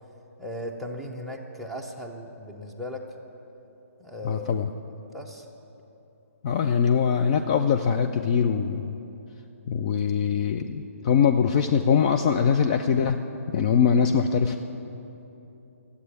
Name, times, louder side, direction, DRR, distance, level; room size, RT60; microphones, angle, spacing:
voice 1, 0.4-3.0 4.0-4.7 5.1-5.5, left 1 dB, ahead, -1 dB, 0.9 m, -37 dB
voice 2, 4.2-4.7 6.4-8.9 9.7-13.2 13.5-14.6, left 7 dB, 30° left, 5 dB, 0.4 m, -22 dB
12.5 x 8.3 x 9.4 m, 3.0 s
figure-of-eight pair, 135°, 8 cm